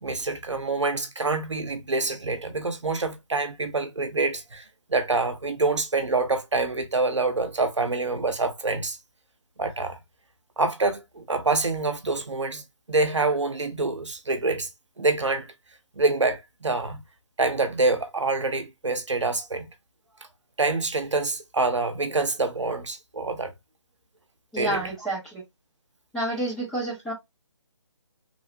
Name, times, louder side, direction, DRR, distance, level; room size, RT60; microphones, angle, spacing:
voice 1, 0.0-4.6 4.9-9.0 9.6-10.0 10.6-12.6 12.9-14.7 15.0-15.5 16.0-17.0 17.4-19.7 20.6-23.5 24.6-24.9, right 3 dB, 70° right, 0.7 m, -26 dB
voice 2, 24.5-25.4 26.1-27.1, right 1 dB, ahead, 0.5 m, -29 dB
3.1 x 2.0 x 2.5 m
figure-of-eight pair, 150°, 16 cm